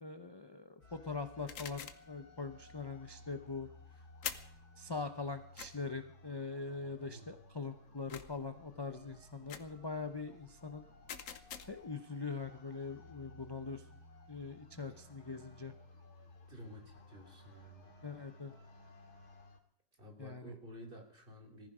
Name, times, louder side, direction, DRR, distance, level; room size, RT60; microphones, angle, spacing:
voice 1, 0.0-3.7 4.8-10.9 11.7-13.8 14.3-15.7 18.0-18.5 20.2-20.5, left 4 dB, 25° left, 8 dB, 0.6 m, -42 dB
sound 1, 0.8-19.6, left 2 dB, 90° left, 2.8 m, -58 dB
sound 2, 1.5-2.1 4.2-4.6 5.6-5.7 8.1-8.5 9.5-9.8 11.1-11.9, left 8 dB, 60° left, 1.3 m, -45 dB
voice 2, 6.9-7.3 16.5-17.9 20.0-21.7, equal, 35° right, 5 dB, 3.0 m, -52 dB
19.5 x 14.5 x 5.0 m, 0.63 s
omnidirectional pair, 1.6 m